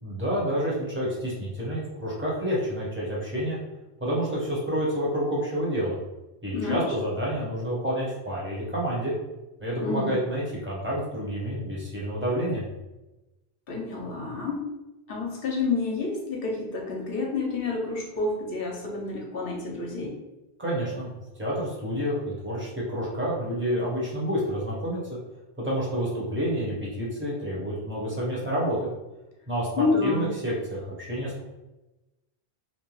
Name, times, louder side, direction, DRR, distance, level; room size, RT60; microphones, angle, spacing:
voice 1, 0.0-3.6 4.0-6.0 6.4-9.1 9.6-12.7 20.6-21.1 21.4-25.0 25.6-28.9 29.5-29.7 30.0-31.4, equal, 10° right, -6 dB, 0.8 m, -29 dB
voice 2, 6.5-6.9 9.8-10.2 13.7-14.7 15.1-20.1 29.8-30.3, left 3 dB, 65° left, -1 dB, 0.8 m, -29 dB
2.5 x 2.2 x 3.0 m, 1.0 s
omnidirectional pair, 1.1 m